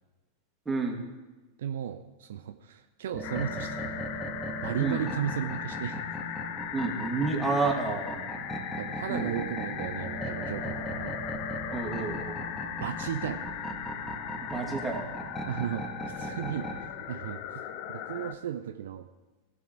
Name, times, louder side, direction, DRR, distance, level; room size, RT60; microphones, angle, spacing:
voice 1, 0.7-1.0 4.8-5.0 6.7-8.3 9.1-9.4 11.7-12.4 14.4-15.0, right 4 dB, 10° right, 1 dB, 2.2 m, -30 dB
voice 2, 1.6-4.0 4.6-6.0 8.8-11.1 12.8-13.4 15.5-15.9 16.1-19.1, right 10 dB, 60° right, 8 dB, 0.6 m, -35 dB
sound 1, 3.1-16.8, equal, 5° left, 1.9 m, -38 dB
sound 2, 3.2-18.3, left 10 dB, 45° left, 0.7 m, -39 dB
18.5 x 7.2 x 4.5 m, 1.2 s
figure-of-eight pair, 90°, 0 cm